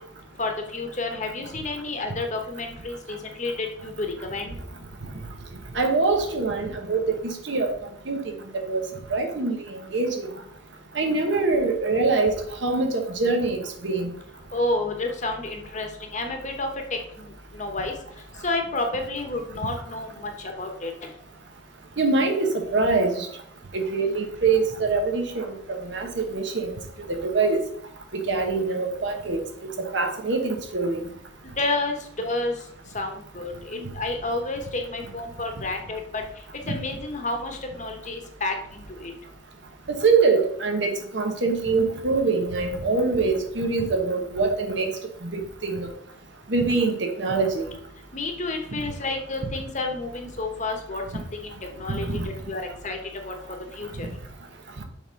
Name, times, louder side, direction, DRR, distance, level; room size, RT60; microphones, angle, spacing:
voice 1, 0.4-4.6 14.5-17.9 18.4-20.9 31.4-32.5 32.9-36.2 36.7-39.1 48.1-51.5 51.8-53.0 53.2-53.3 53.8-54.1, left 2 dB, 40° left, 4 dB, 1.0 m, -30 dB
voice 2, 5.7-7.7 8.1-8.8 9.1-10.3 10.9-12.4 12.6-14.1 22.0-23.3 23.7-26.8 27.1-27.6 28.1-29.4 29.8-31.0 33.8-33.9 36.7-36.8 39.9-44.9 45.2-45.9 46.5-47.7 51.9-52.3 54.0-54.1, right 3 dB, 65° right, 4 dB, 1.1 m, -24 dB
7.0 x 3.6 x 5.2 m, 0.69 s
head